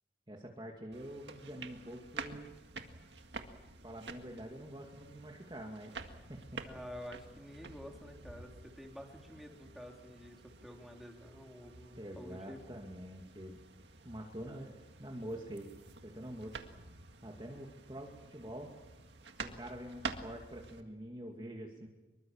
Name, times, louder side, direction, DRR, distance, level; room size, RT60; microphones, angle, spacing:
voice 1, 0.3-2.5 3.8-6.6 11.9-13.6 14.0-15.7 16.0-16.6 17.2-18.7 19.4-21.9, right 1 dB, 25° right, 1 dB, 2.3 m, -46 dB
sound 1, 0.9-20.8, right 4 dB, 75° right, 1.9 m, -49 dB
voice 2, 6.6-12.6, equal, ahead, 1 dB, 3.5 m, -49 dB
26.0 x 23.0 x 7.3 m, 1.1 s
head